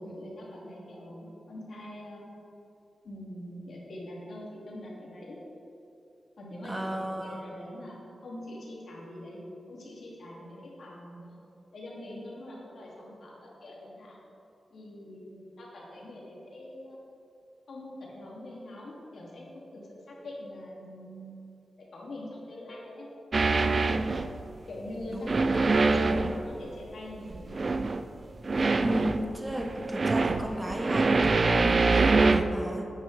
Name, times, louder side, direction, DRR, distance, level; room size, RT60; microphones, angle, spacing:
voice 1, 0.0-2.3 3.0-5.4 6.4-9.4 9.7-11.4 11.7-14.2 14.7-17.0 17.7-19.5 19.7-21.4 21.9-23.1 24.7-27.7, left 1 dB, 70° left, -4 dB, 2.3 m, -43 dB
voice 2, 6.6-7.5 25.1-26.3 28.8-32.9, right 1 dB, 15° right, 3 dB, 0.9 m, -34 dB
sound 1, 23.3-24.4 25.0-26.6 27.2-28.1 28.4-32.4, right 3 dB, 45° right, 0.4 m, -25 dB
10.0 x 9.1 x 3.3 m, 2.8 s
cardioid pair, 85°, 0 cm